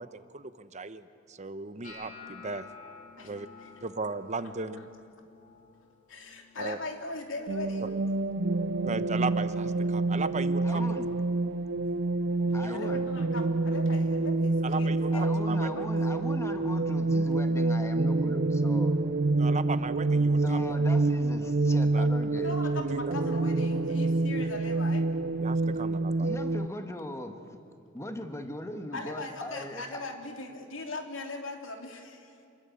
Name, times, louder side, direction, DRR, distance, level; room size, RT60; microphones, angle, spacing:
voice 1, 0.0-2.6 3.2-3.5 3.8-4.9 6.6-6.8 8.8-10.9 12.6-12.8 14.6-15.7 19.4-20.7 21.9-22.1 22.9-23.0 25.4-26.3, right 3 dB, 35° right, 12 dB, 0.9 m, -36 dB
sound 1, 1.8-7.9 8.2-8.7 9.1-9.6 10.2-10.4 12.2-12.3, left 5 dB, 45° left, 4.0 m, -52 dB
voice 2, 6.1-7.9 12.7-15.8 22.4-25.0 28.9-32.4, left 2 dB, 80° left, 4 dB, 3.1 m, -40 dB
sound 2, 7.5-26.7, right 2 dB, 55° right, 0.6 m, -27 dB
voice 3, 10.6-11.1 12.5-13.0 15.1-19.0 20.4-22.6 23.3-23.5 26.2-27.4 27.9-30.0, left 1 dB, 15° left, 6 dB, 1.6 m, -39 dB
27.5 x 21.5 x 8.5 m, 2.6 s
head